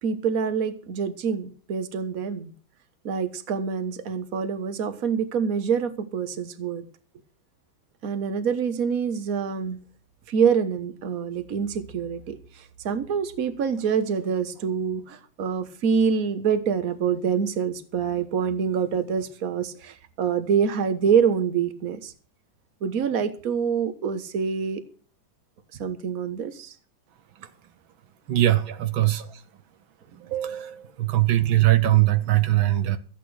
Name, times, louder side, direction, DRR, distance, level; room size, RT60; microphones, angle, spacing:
voice 1, 0.0-2.5 3.0-6.8 8.0-9.8 10.3-12.3 12.8-22.1 22.8-24.8 25.8-26.7 28.7-28.8 29.2-29.3, right 6 dB, 50° right, 1.6 m, -26 dB
voice 2, 28.3-29.2 30.2-33.0, right 14 dB, 80° right, 1.7 m, -21 dB
15.0 x 8.4 x 6.4 m
omnidirectional pair, 2.2 m